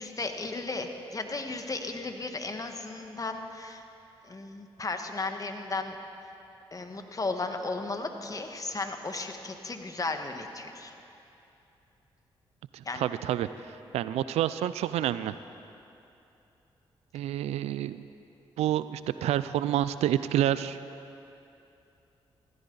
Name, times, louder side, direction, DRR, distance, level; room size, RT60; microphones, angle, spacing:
voice 1, 0.0-3.8 4.2-6.0 6.7-10.9 12.8-13.1, left 3 dB, 35° left, 5 dB, 1.5 m, -35 dB
voice 2, 12.7-15.3 17.1-18.1 18.6-20.8, right 12 dB, 85° right, 14 dB, 0.4 m, -29 dB
17.0 x 15.0 x 4.0 m, 2.8 s
supercardioid pair, 50°, 11 cm